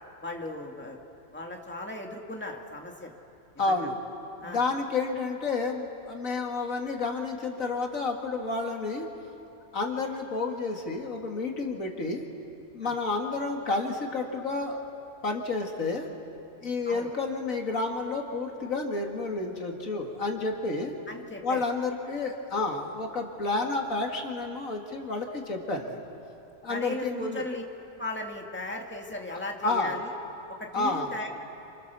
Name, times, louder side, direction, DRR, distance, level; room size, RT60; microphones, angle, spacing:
voice 1, 0.2-1.0 1.3-3.1 3.7-3.8 4.4-4.6 12.8-12.9 16.9-17.1 21.1-21.6 26.7-27.6 28.0-30.1 30.6-31.3, left 2 dB, 10° left, 1 dB, 2.0 m, -37 dB
voice 2, 3.6-4.0 4.4-9.1 9.7-12.2 12.7-14.8 15.2-16.1 16.6-20.9 21.4-26.0 26.6-27.5 29.3-30.0 30.7-31.1, left 3 dB, 80° left, 2 dB, 2.6 m, -30 dB
29.5 x 27.5 x 6.9 m, 2.8 s
omnidirectional pair, 1.4 m